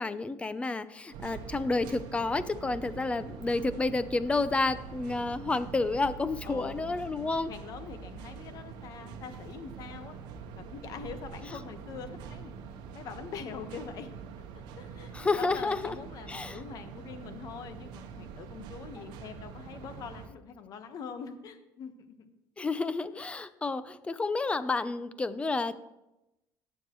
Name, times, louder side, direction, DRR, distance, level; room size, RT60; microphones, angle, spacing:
voice 1, 0.0-7.5 15.1-16.0 16.3-16.6 22.6-25.8, left 3 dB, 15° left, 14 dB, 0.6 m, -30 dB
sound 1, 1.1-20.3, right 6 dB, 75° right, 1.0 m, -44 dB
voice 2, 6.4-10.2 10.5-12.6 12.9-14.1 14.5-22.3 22.6-22.7 23.1-23.2, left 6 dB, 55° left, 8 dB, 1.2 m, -44 dB
18.5 x 7.1 x 3.1 m, 0.92 s
cardioid pair, 120°, 8 cm